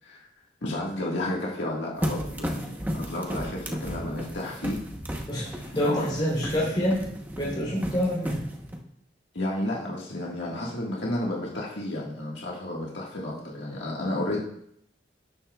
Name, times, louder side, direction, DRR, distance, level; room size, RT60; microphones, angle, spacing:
voice 1, 0.6-4.8 5.7-6.1 6.4-6.5 9.3-14.4, left 1 dB, 85° left, -4 dB, 1.7 m, -32 dB
sound 1, 2.0-8.8, equal, 10° right, 0.9 m, -34 dB
voice 2, 5.3-7.1 7.4-8.4, equal, 25° left, -4 dB, 3.4 m, -27 dB
12.0 x 9.9 x 2.4 m, 0.71 s
head